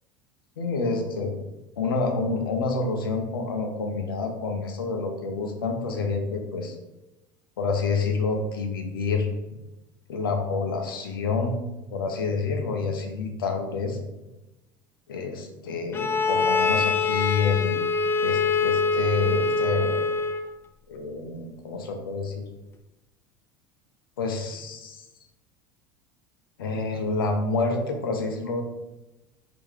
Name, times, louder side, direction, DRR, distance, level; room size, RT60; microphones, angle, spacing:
voice 1, 0.6-1.3 1.8-6.8 7.6-9.3 10.1-11.6 11.9-14.0 15.1-17.8 18.2-20.1 20.9-22.5 24.2-25.1 26.6-28.6, left 4 dB, 80° left, 3 dB, 0.7 m, -28 dB
Bowed string instrument, 15.9-20.5, left 4 dB, 20° left, 0.3 m, -24 dB
3.9 x 2.9 x 3.2 m, 1.0 s
hypercardioid pair, 75°, 12 cm